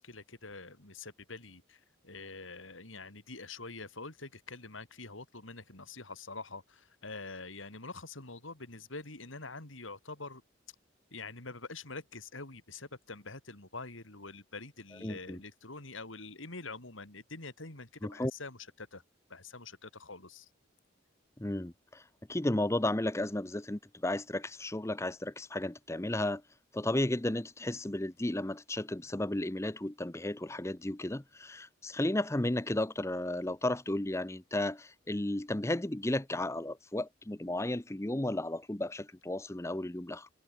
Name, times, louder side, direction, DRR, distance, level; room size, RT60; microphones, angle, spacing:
voice 1, 0.0-10.4 11.1-19.0 19.3-20.5, left 3 dB, 80° left, 4.0 m, -45 dB
voice 2, 15.0-15.4 18.0-18.3 21.4-22.0 22.3-26.4 26.7-40.3, left 1 dB, 15° left, 0.7 m, -33 dB
head